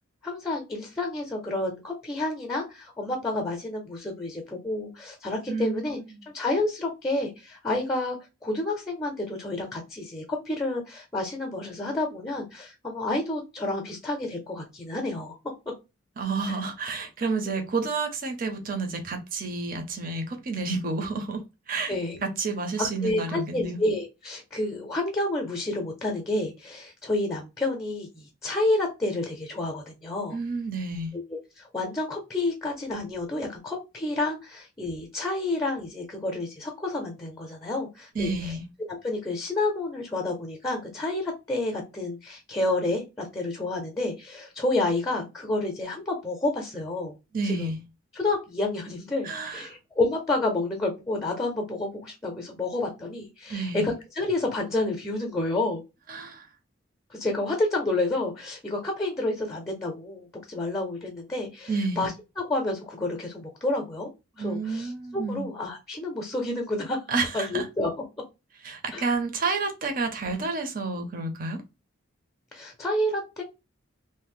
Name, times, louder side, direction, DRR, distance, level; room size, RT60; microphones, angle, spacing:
voice 1, 0.2-6.0 6.3-8.2 8.4-15.4 16.5-16.6 21.9-22.2 22.8-30.4 31.1-47.2 47.4-47.7 48.1-55.8 57.1-64.1 64.3-67.0 67.3-67.9 68.9-69.1 72.5-73.4, left 2 dB, 15° left, 0.5 m, -29 dB
voice 2, 5.5-5.9 16.2-21.4 21.7-21.9 22.2-23.8 30.3-31.1 38.2-38.6 47.3-47.8 49.2-49.6 53.5-53.9 56.1-56.4 61.7-62.1 64.4-65.5 67.1-67.6 68.6-71.6, right 3 dB, 45° right, 0.6 m, -30 dB
2.6 x 2.0 x 3.5 m
head